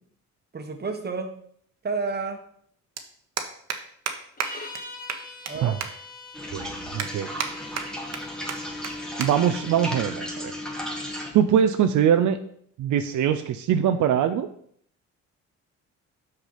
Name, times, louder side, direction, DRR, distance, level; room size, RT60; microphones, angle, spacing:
voice 1, 0.5-1.3 1.8-2.4 5.5-5.8, right 4 dB, 35° right, 5 dB, 1.3 m, -30 dB
sound 1, 0.7-0.8 2.2-2.3 2.5-2.7 3.0-3.1 3.4-3.8 4.1-4.2 4.4-4.5 4.7-4.8 5.1-5.5 5.8-5.9 6.4-6.5 7.0-7.5 7.8-8.2 8.5-8.6 8.8-8.9 9.2-9.3 9.6-9.8 10.6-10.9, right 7 dB, 60° right, 1.1 m, -30 dB
sound 2, 4.4-10.1, left 2 dB, 30° left, 1.4 m, -43 dB
sound 3, 6.3-11.3, left 1 dB, ahead, 1.6 m, -34 dB
voice 2, 6.5-7.3 9.2-10.5 11.3-12.4 12.8-14.5, right 9 dB, 75° right, 8 dB, 0.6 m, -22 dB
6.0 x 5.9 x 5.7 m, 0.64 s
cardioid pair, 90°, 30 cm